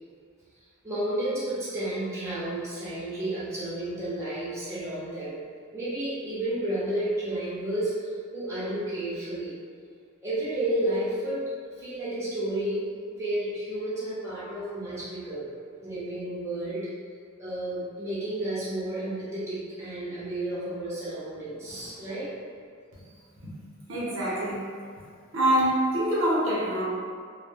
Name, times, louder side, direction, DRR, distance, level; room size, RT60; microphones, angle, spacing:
voice 1, 0.8-5.4 5.7-9.5 10.2-11.4 11.8-15.5 15.8-16.9 17.4-22.3, right 1 dB, 15° right, -11 dB, 0.7 m, -31 dB
voice 2, 23.9-24.7 25.3-26.8, right 1 dB, 70° right, -7 dB, 0.8 m, -25 dB
2.1 x 2.1 x 3.3 m, 2.1 s
head